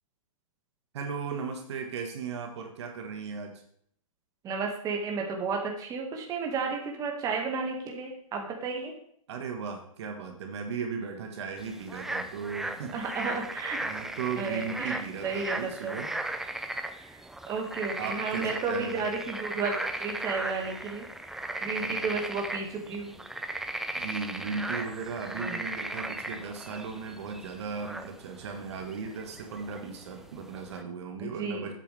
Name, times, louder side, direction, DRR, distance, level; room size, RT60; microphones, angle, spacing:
voice 1, 0.9-3.6 9.3-12.9 13.8-16.1 18.0-19.1 21.7-22.1 23.9-31.7, right 5 dB, 50° right, 4 dB, 1.6 m, -37 dB
voice 2, 4.4-8.9 12.9-13.8 14.4-16.0 17.0-17.2 17.5-21.1 21.6-23.2 25.4-25.6 31.2-31.7, right 4 dB, 20° right, 1 dB, 1.9 m, -33 dB
sound 1, 11.6-30.8, right 2 dB, ahead, 0.4 m, -37 dB
12.0 x 8.4 x 3.5 m, 0.66 s
hypercardioid pair, 130°, 18 cm